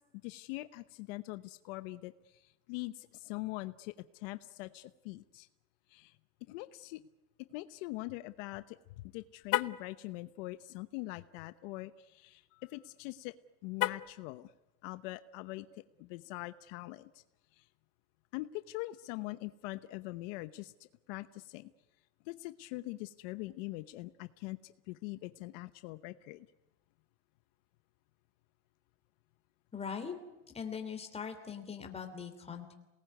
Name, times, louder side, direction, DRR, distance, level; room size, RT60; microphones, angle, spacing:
voice 1, 0.2-2.4 2.7-5.5 5.9-6.1 6.5-7.0 7.5-13.3 13.6-14.5 14.8-15.7 16.0-17.2 17.6-17.7 18.3-21.7 22.3-26.5, left 20 dB, 75° left, 12 dB, 1.0 m, -43 dB
Car, 9.4-9.9 13.7-14.2, left 15 dB, 40° left, 0.8 m, -32 dB
voice 2, 29.7-30.1 30.5-32.7, left 6 dB, 15° left, 5 dB, 3.1 m, -41 dB
27.5 x 19.5 x 9.5 m, 1.1 s
cardioid pair, 150°, 38 cm